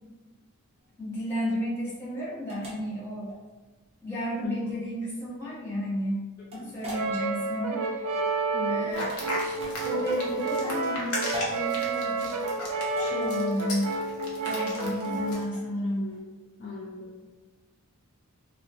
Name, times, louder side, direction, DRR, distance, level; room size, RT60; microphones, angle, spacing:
sound 1, 0.8-16.2, right 1 dB, 25° right, 0.6 m, -43 dB
voice 1, 1.0-3.3 4.0-6.3 6.7-8.2 8.7-9.1 9.4-9.6 9.8-12.4 13.0-14.0 14.4-16.2, equal, 10° left, -10 dB, 0.8 m, -32 dB
voice 2, 4.4-4.8 6.5-6.7 8.5-8.9 16.0-17.2, left 4 dB, 40° left, -4 dB, 0.3 m, -38 dB
Brass instrument, 6.9-15.5, right 3 dB, 80° right, 0.3 m, -30 dB
sound 2, 8.9-15.4, left 1 dB, 70° left, 0.7 m, -36 dB
2.8 x 2.1 x 2.5 m, 1.3 s
head